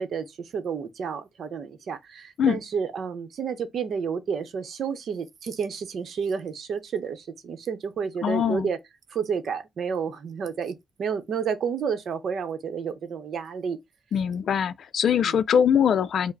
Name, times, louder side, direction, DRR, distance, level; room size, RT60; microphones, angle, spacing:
voice 1, 0.0-8.8 9.1-13.8 15.2-15.4, right 6 dB, 65° right, 0.7 m, -30 dB
voice 2, 8.2-8.7 14.1-16.3, left 8 dB, 65° left, 0.4 m, -22 dB
4.5 x 2.0 x 4.6 m
cardioid pair, 90°, 0 cm